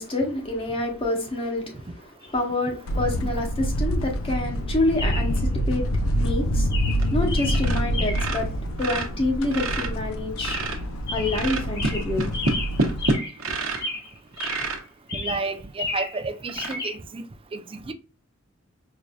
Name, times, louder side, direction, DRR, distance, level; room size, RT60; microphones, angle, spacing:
voice 1, 0.0-6.7 7.0-8.5 8.8-10.6 11.1-12.3, left 2 dB, 25° left, 1.0 m, -27 dB
Chirp tweet, 2.2-2.4 5.0-5.4 6.1-6.4 6.7-8.4 10.4-10.8 11.1-13.5 13.7-14.8 15.1-16.2 16.5-17.0, left 3 dB, 50° left, 1.2 m, -33 dB
sound 1, 2.9-13.1, equal, 80° left, 0.5 m, -26 dB
sound 2, 6.9-7.3 7.5-7.9 8.1-10.9 11.3-14.0 14.3-14.8 15.4-15.5 16.0-16.1 16.5-16.7, right 3 dB, 85° right, 0.9 m, -28 dB
voice 2, 15.1-17.2 17.5-17.9, right 3 dB, 25° right, 0.4 m, -31 dB
4.6 x 2.6 x 2.2 m
head